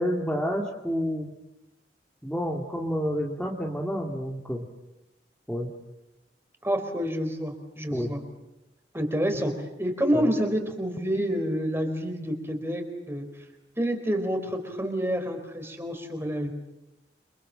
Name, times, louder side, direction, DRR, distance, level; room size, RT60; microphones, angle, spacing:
voice 1, 0.0-1.3 2.2-4.7 5.5-5.7 7.9-8.2 10.1-10.3, equal, 5° left, -1 dB, 2.4 m, -29 dB
voice 2, 6.6-8.2 8.9-13.5 13.8-16.5, equal, 15° right, 6 dB, 4.4 m, -28 dB
30.0 x 25.5 x 7.6 m, 0.95 s
head